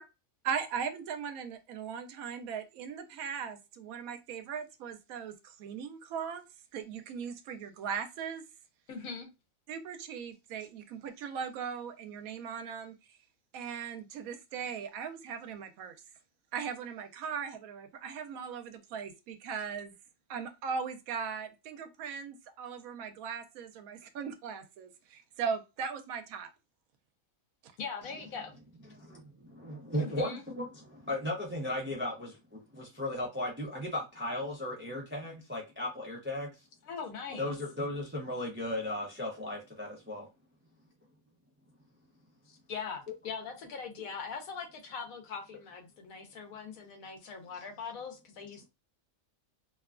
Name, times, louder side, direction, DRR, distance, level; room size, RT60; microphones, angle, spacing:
voice 1, 0.4-6.4 6.7-8.4 9.7-12.9 13.5-16.0 16.5-19.9 20.3-26.5, right 6 dB, 85° right, 1.0 m, -38 dB
voice 2, 8.9-9.3 27.8-28.5 29.9-30.4 36.9-37.5 42.5-48.7, left 5 dB, 80° left, 1.2 m, -41 dB
voice 3, 28.9-36.6 37.4-40.2, left 1 dB, 20° right, 0.3 m, -36 dB
2.9 x 2.2 x 2.4 m
omnidirectional pair, 1.5 m